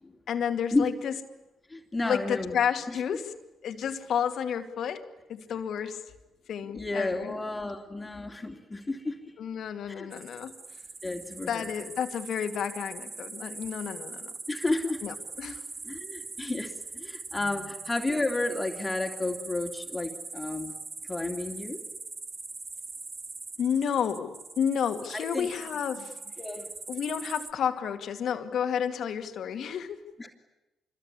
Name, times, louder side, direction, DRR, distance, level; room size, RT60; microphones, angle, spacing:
voice 1, 0.3-1.1 2.0-3.3 3.6-5.0 5.3-6.0 6.5-7.3 9.4-10.5 11.5-14.3 15.0-15.6 23.6-26.2 26.9-30.0, left 8 dB, 65° left, 7 dB, 2.3 m, -31 dB
voice 2, 1.7-2.6 2.9-3.0 6.7-9.2 9.9-10.1 11.0-11.7 14.5-15.0 15.8-20.7 21.0-21.8 25.1-25.5 26.4-26.7 30.2-30.3, left 2 dB, 20° left, 4 dB, 2.9 m, -32 dB
sound 1, 10.1-27.5, right 4 dB, 35° right, 1.4 m, -42 dB
25.5 x 22.5 x 10.0 m, 1.0 s
hypercardioid pair, 55°, 0 cm